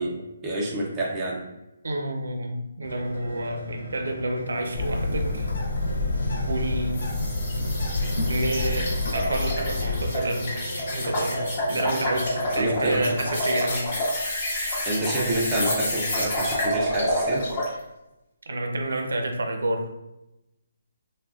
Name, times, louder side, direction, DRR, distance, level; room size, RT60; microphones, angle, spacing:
voice 1, 0.0-1.4 12.6-13.2 14.9-17.5, right 1 dB, 10° right, -5 dB, 0.3 m, -28 dB
voice 2, 1.8-5.5 6.5-7.0 8.3-10.6 10.9-13.9 18.5-19.9, right 1 dB, 80° right, 4 dB, 0.5 m, -29 dB
sound 1, 2.8-13.3, left 1 dB, 90° left, 1.1 m, -37 dB
Bird, 4.7-10.0, left 2 dB, 50° left, 0.6 m, -28 dB
sound 2, 6.9-17.7, left 1 dB, 25° left, 0.9 m, -29 dB
3.4 x 2.1 x 2.3 m, 0.94 s
hypercardioid pair, 180°, 0 cm